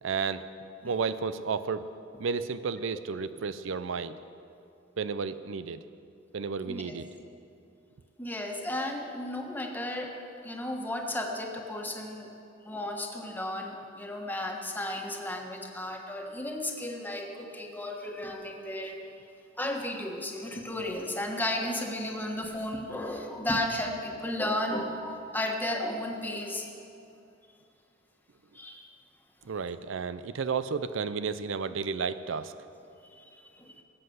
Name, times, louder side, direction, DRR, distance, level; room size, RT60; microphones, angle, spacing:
voice 1, 0.0-0.5 0.8-1.9 2.2-4.2 5.0-5.8 6.3-7.1 29.5-32.5, right 5 dB, 75° right, 13 dB, 0.5 m, -32 dB
voice 2, 8.2-12.3 12.6-18.9 19.6-26.7 28.5-28.9 33.1-33.8, left 1 dB, 10° left, 1 dB, 1.4 m, -34 dB
19.5 x 7.8 x 7.9 m, 2.6 s
head